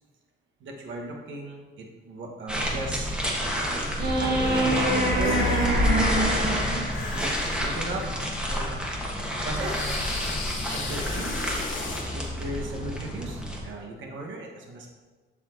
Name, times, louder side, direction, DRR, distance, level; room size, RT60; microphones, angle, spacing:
voice 1, 0.6-3.1 4.2-5.7 7.1-8.1 8.5-8.9 9.4-9.8 10.7-11.6 12.1-14.9, right 2 dB, 75° right, 1 dB, 1.2 m, -37 dB
sound 1, 2.5-13.6, equal, 5° right, 1.3 m, -29 dB
sound 2, 3.4-3.5 4.4-4.7 5.0-5.9 6.9-8.1 8.5-8.6 9.6-12.1, left 4 dB, 80° left, 1.1 m, -37 dB
sound 3, 4.0-7.3 10.0-10.1, right 1 dB, 50° right, 2.1 m, -25 dB
12.0 x 4.1 x 2.6 m, 1.4 s
cardioid pair, 90°, 20 cm